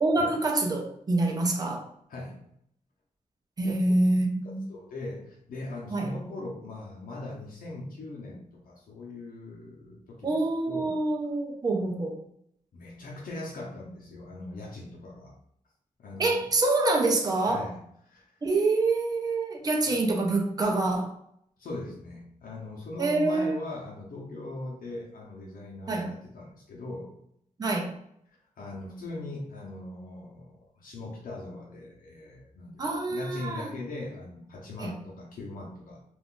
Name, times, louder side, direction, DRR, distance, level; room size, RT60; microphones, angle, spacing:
voice 1, 0.0-1.8 3.6-4.7 5.9-6.1 10.2-12.1 16.2-17.7 18.4-21.1 23.0-23.5 25.9-26.1 27.6-27.9 32.8-33.7 34.8-35.0, right 2 dB, 25° right, 1 dB, 0.5 m, -26 dB
voice 2, 2.1-2.4 3.6-3.7 4.7-11.0 12.7-15.4 16.0-16.4 17.5-18.2 19.9-20.0 21.6-27.1 28.6-36.0, left 2 dB, 85° left, -3 dB, 0.7 m, -40 dB
2.5 x 2.4 x 3.6 m, 0.71 s
wide cardioid pair, 130°, 14 cm